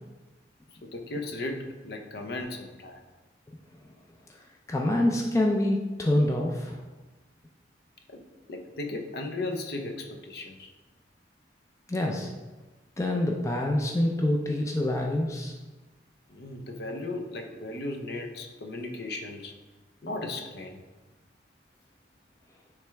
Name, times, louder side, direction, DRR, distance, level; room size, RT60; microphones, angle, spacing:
voice 1, 0.8-3.0 8.1-8.2 8.5-10.7 16.3-19.6 20.0-20.8, left 2 dB, 60° left, 4 dB, 0.7 m, -36 dB
voice 2, 4.7-6.8 11.9-12.3 13.0-15.5, left 1 dB, 15° left, 0 dB, 0.4 m, -26 dB
9.0 x 3.3 x 3.4 m, 1.2 s
head